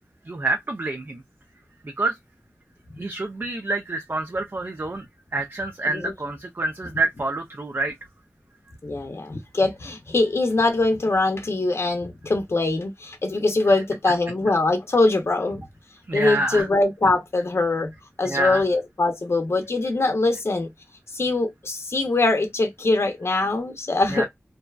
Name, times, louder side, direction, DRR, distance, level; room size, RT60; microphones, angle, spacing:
voice 1, 0.3-1.2 1.8-2.2 3.0-5.1 5.3-7.9 16.1-16.7 18.2-18.6 24.1-24.3, right 2 dB, 50° right, 0.5 m, -27 dB
voice 2, 8.8-15.6 16.1-17.9 18.2-20.7 21.1-24.3, left 2 dB, 65° left, 0.6 m, -22 dB
2.6 x 2.1 x 2.3 m
wide cardioid pair, 45°, 5 cm